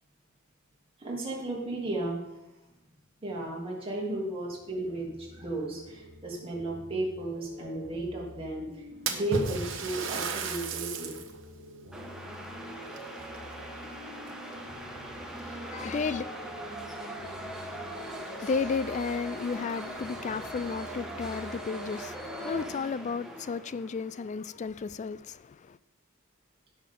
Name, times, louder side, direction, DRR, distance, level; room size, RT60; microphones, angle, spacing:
voice 1, 1.0-2.2 3.2-8.8 9.1-11.2, right 2 dB, 25° right, 3.0 m, -34 dB
sound 1, 4.4-22.6, equal, 15° left, 3.5 m, -48 dB
Splash splatter, 9.1-11.4 11.8-11.9 12.9-13.9 14.3-14.7 15.5-15.6 16.1-16.2 18.4-18.5 18.8-18.9 19.4-19.5 19.9-20.0 20.8-21.3, right 5 dB, 65° right, 1.3 m, -35 dB
sound 2, 11.9-24.2, right 1 dB, 5° right, 1.4 m, -41 dB
voice 2, 15.4-16.2 18.3-25.8, left 5 dB, 35° left, 0.3 m, -33 dB
17.0 x 6.6 x 3.8 m
head